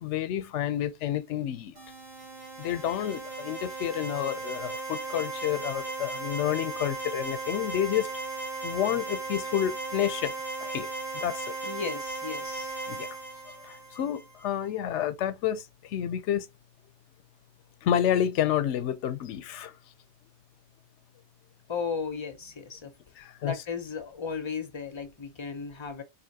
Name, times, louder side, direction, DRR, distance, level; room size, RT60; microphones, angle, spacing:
voice 1, 0.0-1.7 2.6-8.1 8.6-10.3 10.6-10.9 11.1-11.5 12.9-13.1 13.7-15.6 15.9-16.5 17.8-19.7 23.2-23.5, left 10 dB, 85° left, 0.9 m, -29 dB
sound 1, 1.8-14.5, right 3 dB, 55° right, 1.6 m, -36 dB
voice 2, 11.6-12.8 21.7-22.9 23.4-26.0, left 5 dB, 35° left, 0.5 m, -35 dB
4.0 x 2.8 x 2.7 m
omnidirectional pair, 1.2 m